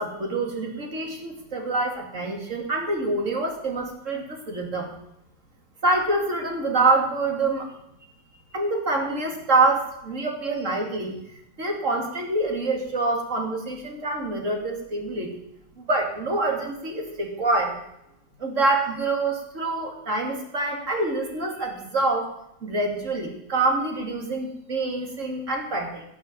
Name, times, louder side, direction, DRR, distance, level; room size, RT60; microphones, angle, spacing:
voice 1, 0.0-4.9 5.8-7.7 8.5-11.2 11.6-15.3 15.9-17.8 18.4-22.3 22.6-26.0, right 2 dB, 40° right, 2 dB, 3.0 m, -26 dB
18.0 x 7.4 x 7.4 m, 0.80 s
omnidirectional pair, 2.1 m